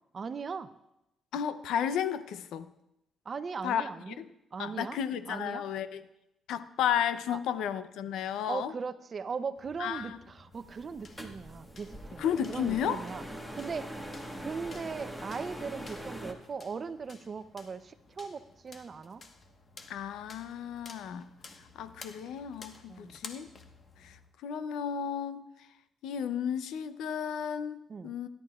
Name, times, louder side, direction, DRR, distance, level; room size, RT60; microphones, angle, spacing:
voice 1, 0.1-0.7 3.3-4.2 4.5-5.0 5.3-5.6 7.3-7.4 8.5-13.2 13.5-13.9 14.4-19.2 22.9-23.2 27.9-28.1, right 5 dB, 40° right, 12 dB, 0.6 m, -39 dB
voice 2, 1.3-2.7 3.6-3.9 4.2-4.3 4.6-6.0 6.5-8.7 9.8-10.2 12.2-13.0 19.9-21.3 21.8-23.5 24.0-25.4 26.0-28.3, left 8 dB, 85° left, 12 dB, 0.6 m, -33 dB
sound 1, 9.6-24.3, left 3 dB, 45° left, 1.2 m, -54 dB
sound 2, 10.5-16.3, equal, 10° left, 1.5 m, -43 dB
16.5 x 11.5 x 2.4 m, 0.86 s
cardioid pair, 90°, 0 cm